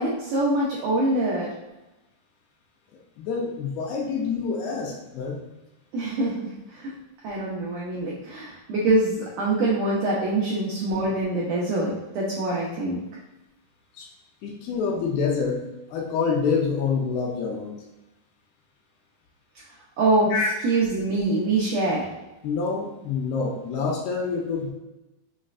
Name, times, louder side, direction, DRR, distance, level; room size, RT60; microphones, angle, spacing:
voice 1, 0.0-1.5 5.9-6.4 6.7-6.9 7.2-13.0 20.0-20.3 20.6-22.0, right 2 dB, 90° right, -6 dB, 1.8 m, -24 dB
voice 2, 3.2-5.4 14.0-14.1 14.4-15.6 15.9-17.7 20.3-20.5 22.4-24.7, left 5 dB, 80° left, -1 dB, 2.5 m, -26 dB
6.5 x 3.1 x 2.5 m, 1.0 s
omnidirectional pair, 4.8 m